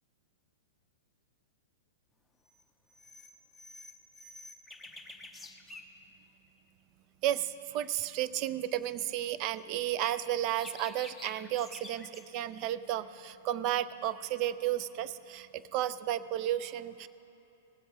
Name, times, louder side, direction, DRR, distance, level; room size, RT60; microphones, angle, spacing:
sound 1, 2.5-2.6 2.9-5.9 9.6-12.3, left 2 dB, 5° left, 0.8 m, -49 dB
voice 1, 7.2-17.1, right 12 dB, 45° right, 15 dB, 0.5 m, -33 dB
19.0 x 7.8 x 5.1 m, 2.9 s
hypercardioid pair, 120°, 0 cm